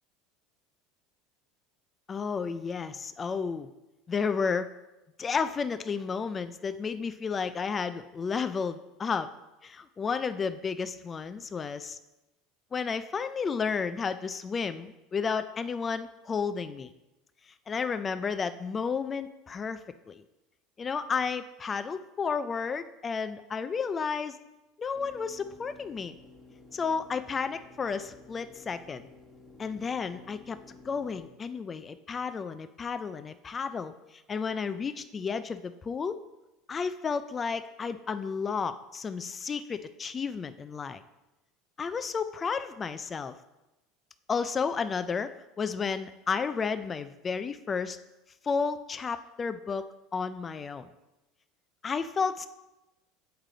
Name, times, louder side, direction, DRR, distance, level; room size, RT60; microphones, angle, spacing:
voice 1, 2.1-3.7 4.1-4.8 5.2-9.4 9.6-12.0 12.7-16.9 17.5-20.2 20.8-24.4 24.8-26.1 26.7-29.1 29.6-30.6 30.8-36.2 36.7-41.0 41.8-43.4 44.3-48.0 48.4-49.9 50.1-50.9 51.8-52.5, left 5 dB, 25° left, 11 dB, 0.3 m, -32 dB
sound 1, 24.9-31.3, left 3 dB, 5° right, 1.2 m, -53 dB
8.0 x 4.8 x 3.8 m, 1.0 s
supercardioid pair, 130°, 0 cm